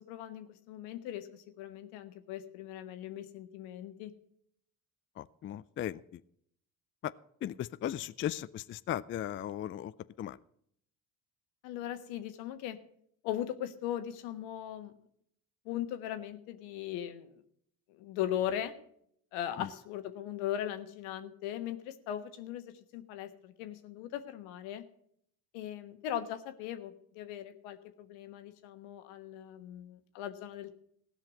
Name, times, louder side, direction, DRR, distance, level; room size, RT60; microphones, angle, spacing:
voice 1, 0.0-4.1 11.6-12.8 13.2-14.9 15.6-17.4 17.9-18.7 19.3-24.8 25.5-30.8, left 11 dB, 75° left, 9 dB, 1.4 m, -39 dB
voice 2, 5.2-6.2 7.4-9.9 10.2-10.4 19.6-19.7, left 11 dB, 25° left, 15 dB, 0.4 m, -37 dB
16.5 x 5.7 x 7.5 m, 0.68 s
hypercardioid pair, 60°, 49 cm